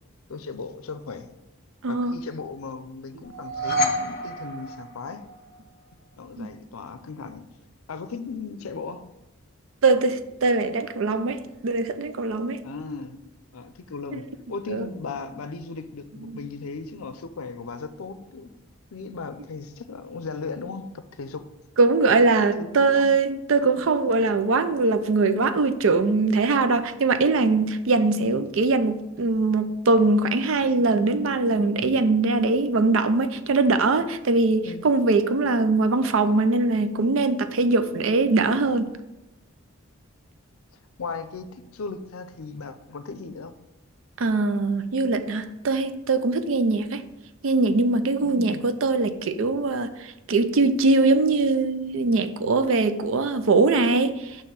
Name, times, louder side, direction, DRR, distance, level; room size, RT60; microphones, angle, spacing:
voice 1, 0.3-1.3 1.9-5.2 6.2-7.5 7.9-9.1 12.6-13.2 13.5-18.5 18.9-21.4 22.4-23.1 34.6-34.8 41.0-43.5 48.2-48.6, left 4 dB, 80° left, 0.5 m, -37 dB
voice 2, 1.8-2.2 6.4-6.5 9.8-12.6 14.7-14.9 16.2-16.4 21.8-38.9 44.2-47.0 47.4-54.4, right 3 dB, 70° right, 0.5 m, -22 dB
sound 1, 3.2-5.5, equal, 45° left, 0.7 m, -28 dB
6.5 x 3.1 x 5.8 m
head